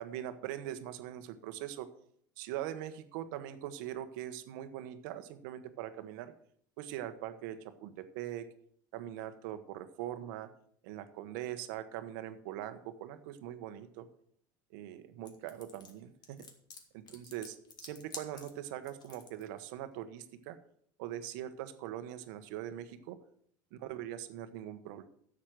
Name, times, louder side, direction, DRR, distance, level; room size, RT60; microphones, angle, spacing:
voice 1, 0.0-1.9 2.4-6.3 6.8-8.5 8.9-10.5 10.8-14.1 14.7-16.5 16.9-17.6 17.8-20.6 21.0-23.2 23.8-25.1, right 12 dB, 75° right, 10 dB, 1.2 m, -42 dB
sound 1, 15.3-19.4, left 5 dB, 40° left, 2.2 m, -49 dB
10.0 x 7.5 x 6.3 m, 0.65 s
hypercardioid pair, 90°, 11 cm